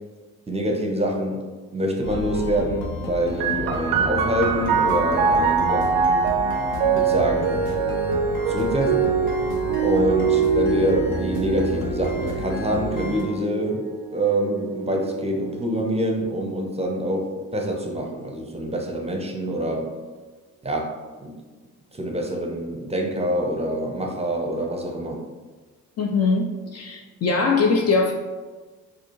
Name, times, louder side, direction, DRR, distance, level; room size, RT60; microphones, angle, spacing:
voice 1, 0.5-1.4 1.7-5.9 6.9-7.6 8.5-9.1 9.8-19.9 20.6-20.9 21.2-21.3 21.9-25.2, right 1 dB, 15° right, 1 dB, 0.7 m, -25 dB
sound 1, 2.0-13.2, left 2 dB, 55° left, 1.0 m, -32 dB
sound 2, 3.4-16.6 17.5-18.3, right 6 dB, 65° right, 0.5 m, -24 dB
voice 2, 26.0-26.4 26.7-28.1, left 4 dB, 40° left, 3 dB, 0.4 m, -21 dB
4.1 x 2.4 x 3.0 m, 1.3 s
hypercardioid pair, 40°, 41 cm